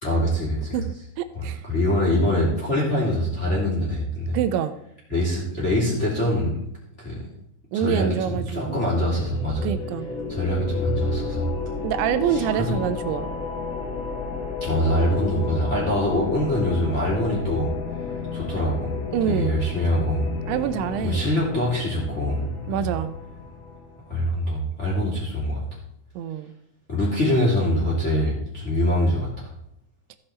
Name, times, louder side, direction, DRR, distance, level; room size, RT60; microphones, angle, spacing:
voice 1, 0.0-0.8 1.3-4.4 5.1-6.6 7.0-7.2 7.7-9.7 10.3-11.5 12.3-12.7 14.6-17.7 18.3-18.9 19.3-20.3 21.0-22.9 24.1-25.6 26.9-29.5, left 1 dB, 20° left, -5 dB, 2.3 m, -24 dB
voice 2, 0.7-1.6 4.3-4.8 7.7-8.9 9.6-10.1 11.8-13.3 19.1-19.5 20.5-21.2 22.7-23.1 26.2-26.5, right 9 dB, 85° right, 11 dB, 2.9 m, -26 dB
sound 1, 8.8-24.1, left 5 dB, 60° left, 1.7 m, -32 dB
15.5 x 6.6 x 4.3 m, 0.73 s
omnidirectional pair, 5.3 m